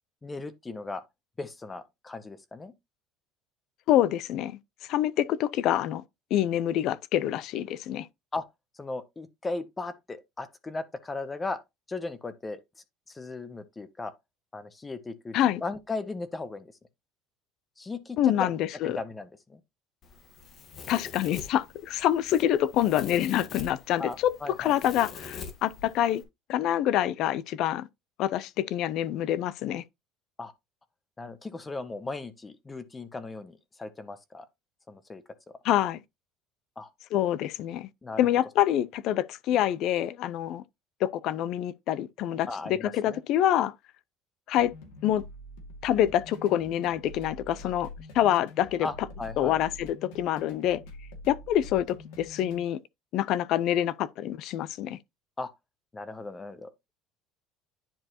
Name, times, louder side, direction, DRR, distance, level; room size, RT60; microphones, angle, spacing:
voice 1, 0.2-1.0 1.4-2.7 8.3-8.4 8.8-11.6 11.9-12.6 13.1-14.1 14.5-15.4 15.6-16.7 17.8-18.5 18.8-19.6 24.0-24.8 30.4-30.5 31.2-34.5 34.9-35.2 36.8-36.9 38.0-38.2 42.5-43.2 48.8-49.6 55.4-55.5 55.9-56.9, left 3 dB, 15° left, 0.7 m, -37 dB
voice 2, 3.9-4.6 4.9-6.0 6.3-8.1 15.3-15.6 18.2-19.0 20.9-24.3 24.6-26.2 26.5-27.9 28.2-29.8 35.6-36.0 37.1-37.9 38.2-40.6 41.0-43.7 44.5-44.7 45.0-45.2 45.8-47.9 48.1-48.9 49.4-50.8 51.3-52.8 53.1-55.0, left 12 dB, 55° left, 0.5 m, -26 dB
Domestic sounds home sounds, 20.0-26.2, left 5 dB, 35° left, 1.4 m, -44 dB
sound 1, 44.6-52.6, left 1 dB, 90° left, 2.3 m, -45 dB
10.0 x 4.6 x 2.9 m
cardioid pair, 145°, 0 cm